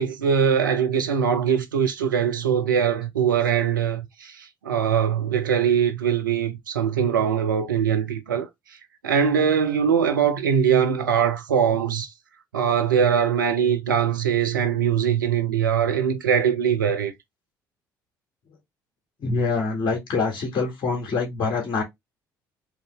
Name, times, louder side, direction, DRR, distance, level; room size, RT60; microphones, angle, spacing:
voice 1, 0.0-8.5 9.0-12.1 12.5-17.1, right 7 dB, 85° right, 0.7 m, -22 dB
voice 2, 19.2-21.8, left 4 dB, 50° left, 1.9 m, -25 dB
4.8 x 3.1 x 3.3 m
figure-of-eight pair, 55°, 10 cm